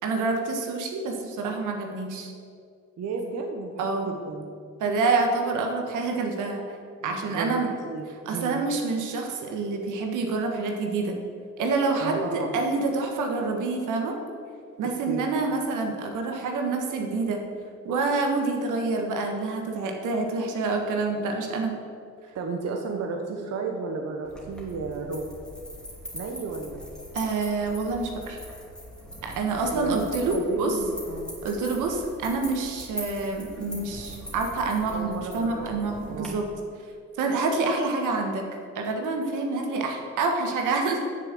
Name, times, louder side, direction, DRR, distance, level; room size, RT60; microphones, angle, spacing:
voice 1, 0.0-2.3 3.8-4.1 4.8-6.6 7.0-7.7 8.2-11.1 11.6-14.2 14.8-17.4 17.8-21.7 27.1-28.4 29.2-30.8 31.4-36.4 37.2-38.4 38.7-41.0, right 3 dB, 85° right, 2 dB, 1.5 m, -27 dB
voice 2, 3.0-4.4 7.0-7.6 7.9-8.6 12.0-12.5 15.1-15.3 22.3-25.3 26.1-26.8 29.5-31.3 34.9-36.4, right 4 dB, 55° right, 2 dB, 1.0 m, -33 dB
sound 1, 24.2-36.3, equal, 5° left, 2.8 m, -42 dB
7.4 x 6.7 x 7.7 m, 2.3 s
cardioid pair, 90°, 30 cm